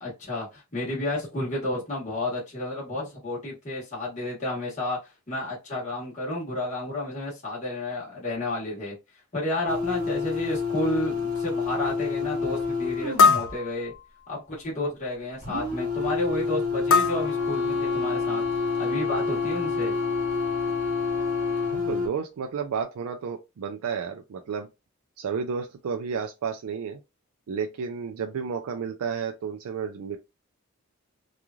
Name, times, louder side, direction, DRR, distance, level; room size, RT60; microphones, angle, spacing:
voice 1, 0.0-8.9 9.3-13.9 14.3-18.4 18.8-19.9, left 1 dB, 35° left, 1.2 m, -31 dB
sound 1, 9.7-13.5 15.4-22.1, left 5 dB, 35° right, 0.9 m, -28 dB
sound 2, 9.8-9.9 10.6-10.7 11.2-11.4 13.2-14.4 16.9-18.2, left 5 dB, 60° left, 0.3 m, -23 dB
Bowed string instrument, 17.0-21.8, left 3 dB, 5° right, 0.5 m, -36 dB
voice 2, 21.7-24.7 25.2-27.0 27.5-30.2, right 6 dB, 80° right, 0.4 m, -31 dB
3.0 x 2.4 x 2.3 m
head